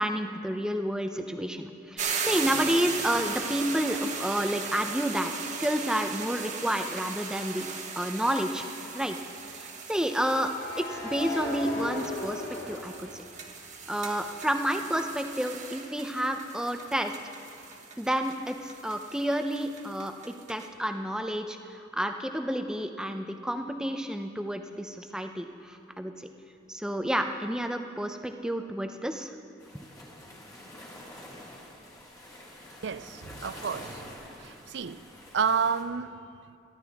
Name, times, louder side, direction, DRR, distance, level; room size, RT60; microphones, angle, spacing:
voice 1, 0.0-5.3 5.6-7.7 8.0-8.6 8.9-9.2 9.5-13.2 13.9-17.2 18.0-26.3 26.7-29.3 29.7-29.9, equal, 5° right, 0.6 m, -30 dB
sound 1, 2.0-20.7, right 5 dB, 40° right, 1.2 m, -38 dB
sound 2, 6.7-6.8 9.9-13.8 14.2-17.8, left 1 dB, 80° left, 3.4 m, -40 dB
sound 3, 29.6-35.8, left 1 dB, 20° left, 2.1 m, -47 dB
voice 2, 32.8-34.1 34.4-35.1 35.3-36.2, right 6 dB, 60° right, 0.5 m, -30 dB
27.0 x 11.5 x 3.6 m
head